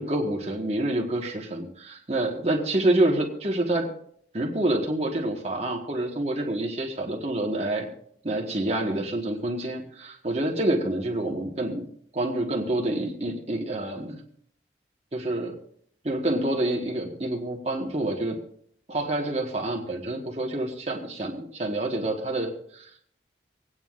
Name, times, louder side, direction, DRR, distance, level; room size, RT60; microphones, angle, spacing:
voice 1, 0.0-3.9 4.3-7.9 8.2-11.8 12.1-14.2 15.1-15.5 16.0-18.4 18.9-23.0, right 1 dB, 35° right, 0 dB, 1.4 m, -27 dB
26.0 x 9.4 x 2.5 m, 0.64 s
head